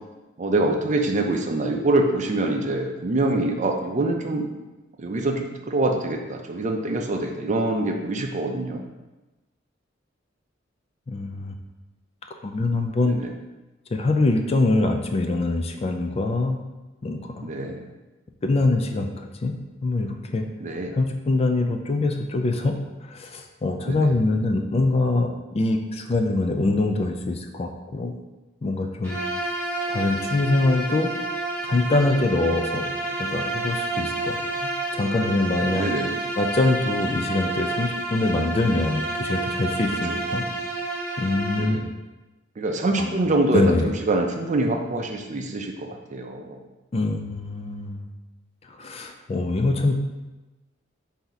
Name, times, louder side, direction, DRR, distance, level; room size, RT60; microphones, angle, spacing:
voice 1, 0.4-4.5 5.0-8.8 13.0-13.3 17.4-17.9 20.6-21.0 23.9-24.1 35.7-36.2 40.1-40.5 41.6-41.8 42.6-46.6, right 2 dB, 40° right, 3 dB, 0.5 m, -25 dB
voice 2, 11.1-11.5 12.4-13.2 13.9-16.6 17.0-17.5 18.4-20.5 20.9-28.2 28.6-29.2 29.9-31.1 31.6-32.9 33.2-35.9 36.4-40.4 41.2-41.8 43.0-43.1 43.5-43.9 46.9-48.1 48.8-50.0, left 2 dB, 30° left, 5 dB, 0.3 m, -24 dB
Bowed string instrument, 29.0-41.8, right 2 dB, 10° left, 1.0 m, -29 dB
4.5 x 2.7 x 3.9 m, 1.1 s
head